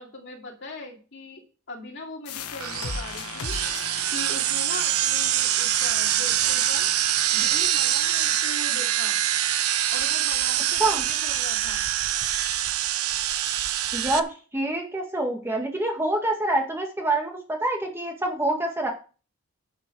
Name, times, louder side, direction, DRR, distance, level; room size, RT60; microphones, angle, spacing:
voice 1, 0.0-3.6 4.1-6.9 7.3-9.2 9.9-11.8, left 2 dB, 50° left, 1 dB, 2.7 m, -40 dB
sound 1, 2.3-7.7, left 4 dB, 90° left, 1.1 m, -39 dB
sound 2, 2.6-14.2, right 11 dB, 80° right, 0.9 m, -25 dB
voice 2, 13.9-14.3 14.5-18.9, right 2 dB, 10° right, 1 dB, 1.8 m, -26 dB
10.5 x 7.7 x 4.7 m, 0.36 s
head